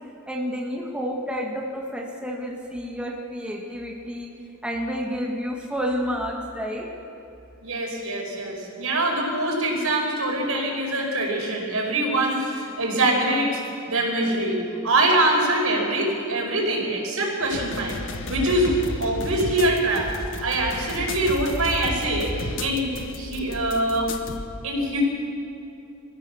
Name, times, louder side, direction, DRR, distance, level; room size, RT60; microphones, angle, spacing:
voice 1, 0.3-4.3 4.6-6.9 18.2-18.5, equal, 5° right, -1 dB, 1.9 m, -30 dB
voice 2, 7.6-13.6 13.9-18.0 18.3-18.7 19.0-20.1 20.4-22.3 22.6-24.1 24.6-25.0, right 1 dB, 80° right, -1 dB, 5.2 m, -24 dB
sound 1, 17.4-24.4, left 2 dB, 60° left, 1.4 m, -33 dB
24.5 x 15.5 x 7.2 m, 2.8 s
head